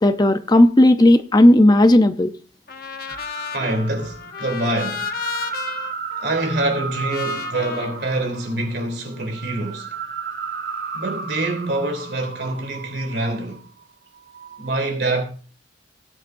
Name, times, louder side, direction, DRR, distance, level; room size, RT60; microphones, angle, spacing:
voice 1, 0.0-2.3, left 1 dB, 20° left, 0.6 m, -13 dB
Trumpet, 2.7-8.9, left 6 dB, 55° left, 0.9 m, -34 dB
sound 1, 3.1-13.7 14.2-14.7, right 4 dB, 85° right, 1.7 m, -33 dB
voice 2, 3.5-5.1 6.2-10.0 10.9-13.6 14.6-15.2, right 2 dB, 65° right, 3.2 m, -25 dB
18.0 x 9.7 x 2.6 m
head